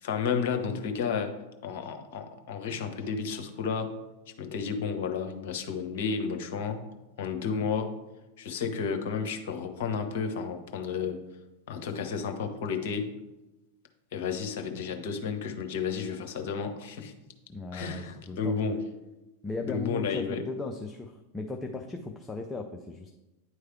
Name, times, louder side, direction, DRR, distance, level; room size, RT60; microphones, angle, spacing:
voice 1, 0.0-3.9 4.4-6.8 7.2-7.9 8.4-11.2 11.7-13.1 14.1-17.1 17.7-18.8 19.6-20.4, left 6 dB, 55° left, 6 dB, 0.8 m, -32 dB
voice 2, 17.5-18.6 19.4-23.1, left 3 dB, 15° left, 3 dB, 0.5 m, -37 dB
9.3 x 3.2 x 4.5 m, 1.0 s
figure-of-eight pair, 90°, 0 cm